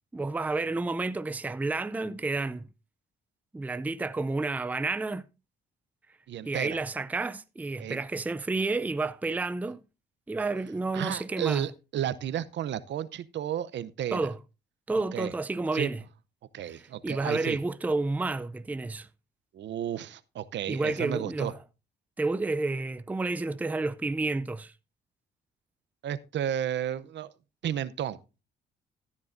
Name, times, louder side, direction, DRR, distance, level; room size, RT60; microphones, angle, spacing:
voice 1, 0.1-2.7 3.5-5.2 6.4-9.8 10.3-11.7 14.1-14.4 14.9-16.0 16.7-19.1 20.7-21.5 22.2-24.7, right 3 dB, 10° right, 0.4 m, -30 dB
voice 2, 6.3-6.8 7.8-8.0 10.9-14.3 15.1-15.3 15.7-15.9 16.5-17.6 19.5-21.5 26.0-27.3 27.6-28.2, right 10 dB, 65° right, 0.7 m, -32 dB
14.0 x 9.8 x 2.6 m
cardioid pair, 90°, 20 cm